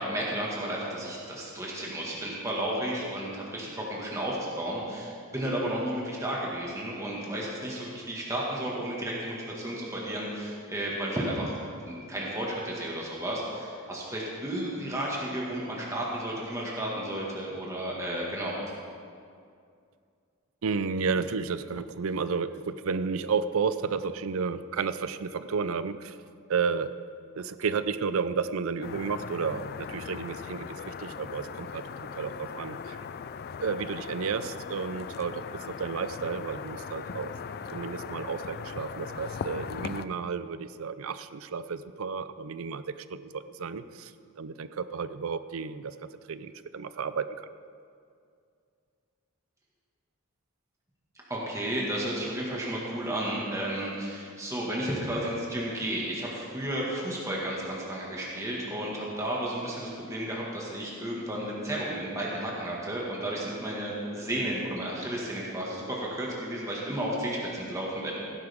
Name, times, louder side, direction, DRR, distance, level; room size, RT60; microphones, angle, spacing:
voice 1, 0.0-11.6 11.9-18.5 51.3-68.1, right 1 dB, 15° right, -4 dB, 1.8 m, -33 dB
voice 2, 20.6-26.2 26.5-26.9 27.4-31.8 32.1-33.0 33.6-37.3 37.7-42.8 43.1-44.1 44.4-47.5, right 5 dB, 70° right, 13 dB, 0.5 m, -32 dB
sound 1, 28.8-40.1, left 6 dB, 45° left, 0.3 m, -39 dB
16.5 x 11.0 x 3.6 m, 2.3 s
head